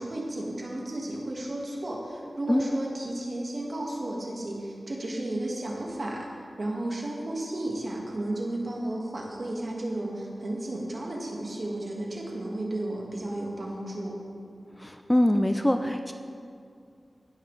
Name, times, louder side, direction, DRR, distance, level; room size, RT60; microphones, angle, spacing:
voice 1, 0.0-6.3 6.6-14.2, right 1 dB, 50° right, -2 dB, 1.7 m, -33 dB
voice 2, 14.8-16.1, left 1 dB, 10° left, 6 dB, 0.4 m, -23 dB
16.0 x 5.8 x 3.3 m, 2.4 s
wide cardioid pair, 80°, 0 cm